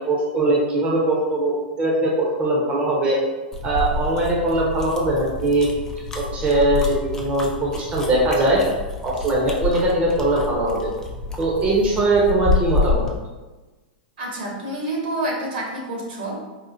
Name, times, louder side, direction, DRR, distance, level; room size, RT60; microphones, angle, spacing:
voice 1, 0.0-3.2 3.6-5.7 6.1-8.6 9.0-10.9 11.4-13.1, right 2 dB, 25° right, -3 dB, 0.7 m, -21 dB
sound 1, 3.5-13.2, left 2 dB, 10° left, 0.4 m, -28 dB
voice 2, 14.2-16.4, right 1 dB, 70° right, -2 dB, 1.2 m, -28 dB
4.3 x 2.0 x 2.5 m, 1.2 s
hypercardioid pair, 115°, 5 cm